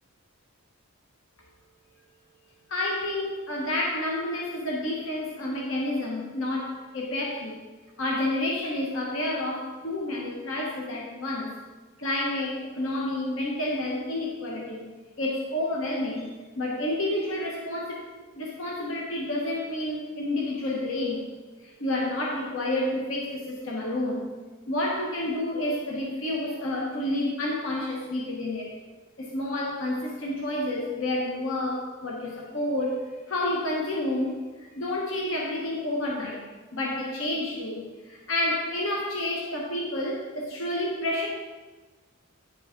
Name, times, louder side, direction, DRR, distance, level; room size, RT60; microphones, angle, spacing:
voice 1, 2.7-7.6 8.0-11.5 12.0-14.9 15.2-18.0 18.3-21.2 21.6-24.3 24.7-28.7 29.2-36.4 36.7-41.3, left 1 dB, 60° left, -2 dB, 1.1 m, -29 dB
9.4 x 4.9 x 3.8 m, 1.3 s
head